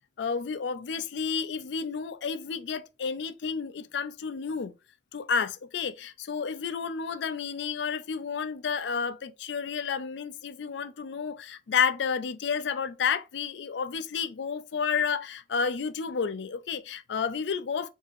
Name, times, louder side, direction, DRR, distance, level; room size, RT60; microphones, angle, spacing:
voice 1, 0.2-4.7 5.1-17.9, left 6 dB, 70° left, 0.4 m, -31 dB
4.1 x 2.8 x 2.5 m
head